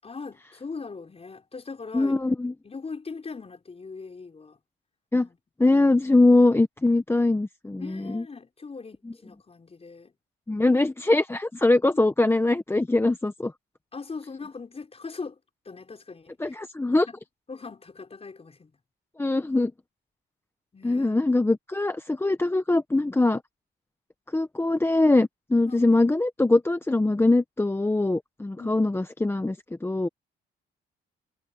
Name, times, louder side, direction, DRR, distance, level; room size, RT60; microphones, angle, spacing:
voice 1, 0.0-2.2 2.6-4.6 5.2-5.4 7.8-10.1 13.9-15.4 15.6-16.6 16.9-17.2 17.5-18.7 20.7-21.3 25.7-25.9 28.6-28.9, left 4 dB, 30° left, 6.0 m, -40 dB
voice 2, 1.9-2.5 5.1-5.3 5.6-8.2 9.1-9.2 10.5-13.5 16.4-17.1 19.2-19.7 20.8-23.4 24.3-30.1, left 2 dB, 10° left, 1.1 m, -22 dB
cardioid pair, 90°, 20 cm